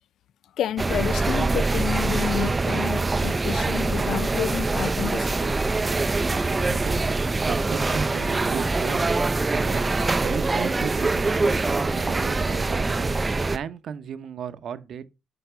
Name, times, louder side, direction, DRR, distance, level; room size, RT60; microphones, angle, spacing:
voice 1, 0.6-5.3, left 10 dB, 75° left, 0.3 m, -30 dB
sound 1, 0.8-13.6, right 3 dB, 25° right, 0.4 m, -24 dB
voice 2, 6.3-7.1 7.5-9.0 9.4-13.2 13.5-15.1, right 8 dB, 65° right, 0.7 m, -35 dB
6.8 x 4.2 x 5.6 m
cardioid pair, 90°, 0 cm